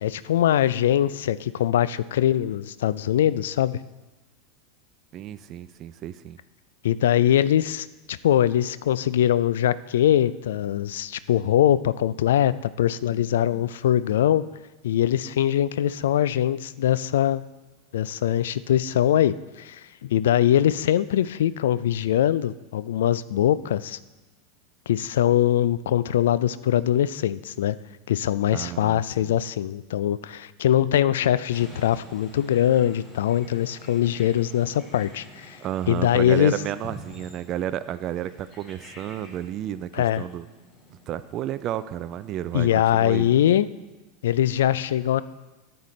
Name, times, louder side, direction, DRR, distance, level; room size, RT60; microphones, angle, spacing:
voice 1, 0.0-3.8 6.8-14.4 14.8-17.4 17.9-24.0 24.9-27.8 28.1-35.6 35.9-36.5 39.9-40.2 42.5-43.7 44.2-45.2, left 11 dB, 65° left, 17 dB, 0.3 m, -22 dB
voice 2, 5.1-6.4 28.5-29.4 35.6-40.5 40.9-43.3, right 11 dB, 40° right, 13 dB, 0.3 m, -32 dB
sound 1, 31.5-42.6, equal, 25° left, 2.9 m, -48 dB
12.5 x 7.8 x 3.2 m, 1.1 s
figure-of-eight pair, 85°, 0 cm